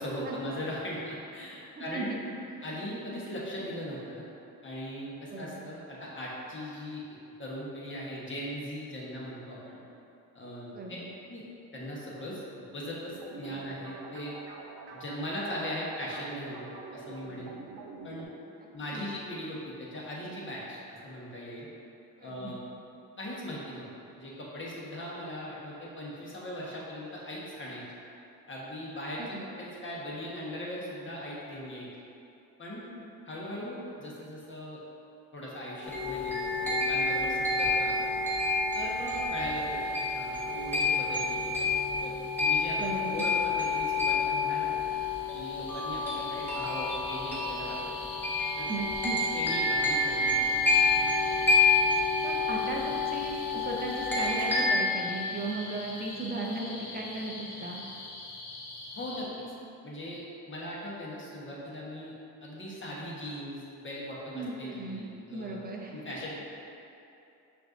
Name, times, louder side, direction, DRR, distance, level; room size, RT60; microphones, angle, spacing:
voice 1, 0.0-2.1 2.6-4.2 4.6-7.0 7.4-9.8 10.3-10.7 11.3-11.4 11.7-12.4 12.7-14.3 14.9-16.7 16.9-17.5 18.0-18.3 18.7-21.7 22.2-22.6 23.2-23.9 24.2-27.8 28.5-31.9 32.6-32.8 33.3-34.8 35.3-38.1 38.7-41.7 42.0-44.9 45.3-47.8 48.6-48.7 49.3-50.6 50.9-51.1 58.9-59.3 59.8-62.2 62.4-65.6 65.9-66.3, equal, 25° left, -5 dB, 1.1 m, -39 dB
voice 2, 1.8-2.2 5.3-5.6 10.7-11.1 18.9-19.0 22.2-22.5 29.2-29.4 42.8-43.3 47.8-48.2 48.7-49.2 52.2-57.8 64.3-66.0, right 2 dB, 20° right, -1 dB, 0.6 m, -37 dB
sound 1, 13.1-18.3, right 3 dB, 65° right, 0.6 m, -46 dB
sound 2, 35.8-54.7, left 3 dB, 5° left, 1.0 m, -28 dB
sound 3, 39.3-59.3, left 2 dB, 60° left, 0.8 m, -45 dB
5.6 x 2.6 x 2.5 m, 2.8 s
supercardioid pair, 65°, 43 cm